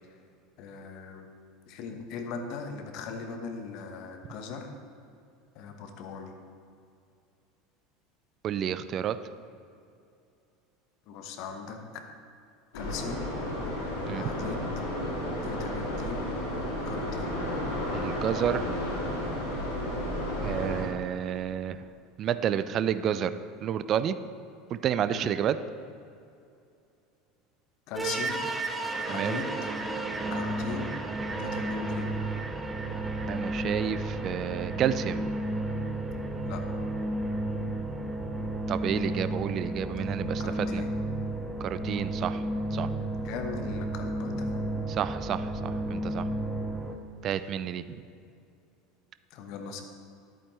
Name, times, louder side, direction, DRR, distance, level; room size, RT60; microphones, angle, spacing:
voice 1, 0.6-1.3 1.7-4.7 5.5-6.3 11.1-11.8 12.7-13.2 13.8-14.6 15.4-16.3 16.8-17.3 25.1-25.3 27.9-28.4 29.0-29.7 30.3-30.9 31.4-32.1 36.4-36.6 40.4-40.9 43.2-44.7 49.3-49.8, left 5 dB, 50° left, 5 dB, 1.0 m, -39 dB
voice 2, 8.4-9.2 14.1-14.2 17.9-18.7 20.4-21.8 22.2-23.3 23.6-24.1 24.7-25.6 29.1-29.4 33.3-35.3 38.7-40.8 41.6-42.4 42.7-42.9 44.9-46.3 47.2-48.0, right 9 dB, 40° right, 13 dB, 0.4 m, -30 dB
sound 1, 12.7-20.8, left 1 dB, 65° left, 1.9 m, -32 dB
sound 2, 28.0-47.0, right 1 dB, 10° right, 0.8 m, -32 dB
10.5 x 8.7 x 3.2 m, 2.5 s
figure-of-eight pair, 75°, 0 cm